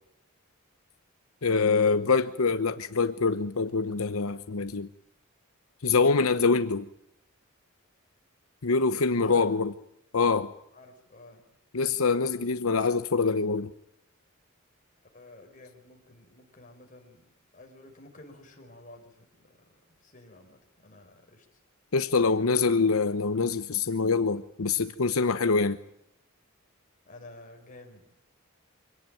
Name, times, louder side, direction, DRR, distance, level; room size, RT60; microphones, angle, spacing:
voice 1, 1.4-4.9 5.8-6.9 8.6-9.7 10.1-10.5 11.7-13.7 21.9-25.8, left 4 dB, 85° left, 0.9 m, -25 dB
voice 2, 10.7-11.5 15.1-17.3 17.5-19.6 20.0-21.6 22.2-22.6 25.4-25.6 27.1-28.0, left 2 dB, 40° left, 5.6 m, -50 dB
25.0 x 18.0 x 9.2 m
head